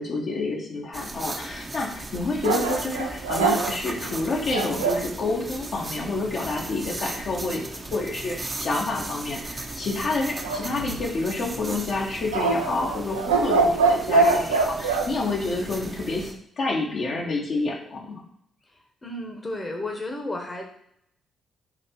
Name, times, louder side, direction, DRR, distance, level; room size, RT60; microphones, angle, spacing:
voice 1, 0.0-7.6 7.9-16.3 16.6-18.1, left 3 dB, 55° left, -2 dB, 1.0 m, -28 dB
sound 1, 0.9-16.3, right 2 dB, 30° right, 0.6 m, -37 dB
sound 2, 2.4-5.1 10.4-11.3 12.3-15.1, right 3 dB, 85° right, 0.4 m, -23 dB
voice 2, 19.0-20.7, left 1 dB, 30° left, 2 dB, 1.0 m, -32 dB
4.2 x 2.8 x 4.3 m, 0.72 s
figure-of-eight pair, 40°, 0 cm